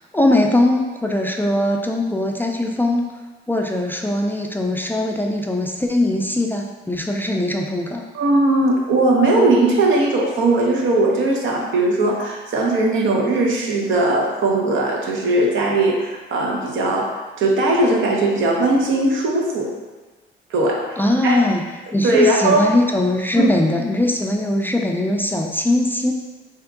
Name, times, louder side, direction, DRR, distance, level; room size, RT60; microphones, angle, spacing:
voice 1, 0.1-3.1 3.5-8.0 21.0-21.6 21.9-26.1, left 1 dB, 10° left, 1 dB, 0.3 m, -20 dB
voice 2, 8.1-19.7 20.5-21.5 22.0-22.7 23.4-23.5, right 2 dB, 75° right, 0 dB, 0.8 m, -19 dB
3.5 x 2.9 x 3.6 m, 1.2 s
cardioid pair, 90°, 20 cm